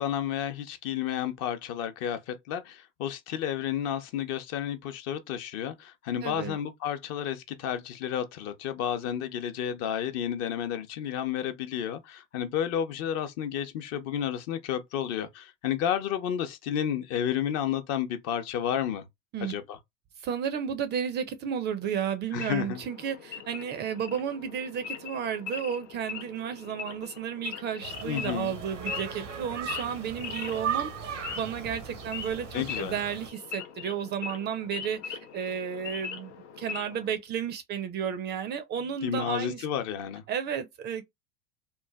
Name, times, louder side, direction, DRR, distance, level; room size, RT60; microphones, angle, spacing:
voice 1, 0.0-19.0 19.4-19.8 22.3-22.8 28.0-28.5 32.5-33.0 39.0-40.2, left 9 dB, 45° left, 0.6 m, -31 dB
voice 2, 6.2-6.5 19.3-19.5 20.2-39.6 40.3-41.0, right 8 dB, 30° right, 0.4 m, -33 dB
Wild animals / Idling, 22.4-37.1, left 7 dB, 80° left, 0.6 m, -41 dB
sound 1, 27.8-33.3, right 7 dB, 85° right, 0.7 m, -37 dB
3.1 x 2.1 x 2.2 m
hypercardioid pair, 85°, 36 cm